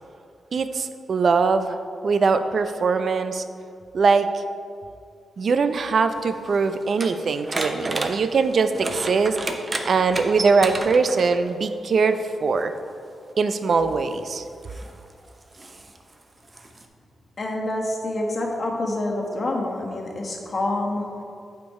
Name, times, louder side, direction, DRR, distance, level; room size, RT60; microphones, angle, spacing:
voice 1, 0.5-1.8 2.0-3.4 3.9-4.4 5.4-12.7 13.4-14.4, right 4 dB, 60° right, 10 dB, 0.4 m, -22 dB
sound 1, 6.1-11.5 12.6-12.7 13.5-16.9, right 2 dB, 30° right, 0.7 m, -33 dB
voice 2, 17.4-21.2, left 2 dB, 45° left, -1 dB, 1.3 m, -27 dB
8.4 x 4.5 x 4.7 m, 2.4 s
cardioid pair, 80°, 0 cm